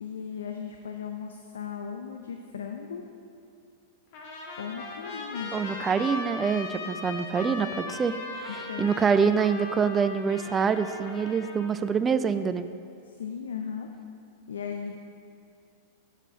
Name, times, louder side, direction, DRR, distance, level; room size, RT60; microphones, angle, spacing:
voice 1, 0.0-3.0 4.6-5.5 8.5-9.0 13.0-13.9 14.5-15.0, left 7 dB, 75° left, 4 dB, 0.4 m, -37 dB
Trumpet, 4.1-11.8, left 3 dB, 50° left, 1.0 m, -38 dB
voice 2, 5.5-8.5 8.8-12.7, right 6 dB, 20° right, 11 dB, 0.3 m, -26 dB
6.7 x 4.9 x 5.4 m, 2.5 s
figure-of-eight pair, 95°, 0 cm